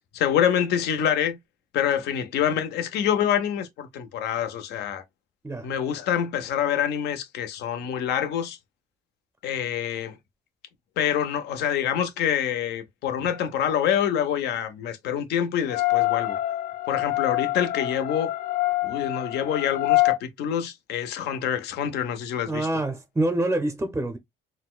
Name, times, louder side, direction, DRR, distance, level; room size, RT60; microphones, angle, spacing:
voice 1, 0.1-1.4 1.7-5.0 5.6-8.6 9.4-10.2 11.0-16.4 16.9-18.3 18.8-22.7, left 9 dB, 80° left, 0.7 m, -26 dB
sound 1, 15.7-20.2, left 17 dB, 55° left, 0.4 m, -25 dB
voice 2, 22.5-24.2, right 2 dB, 10° right, 0.5 m, -26 dB
4.0 x 2.2 x 2.3 m
cardioid pair, 110°, 17 cm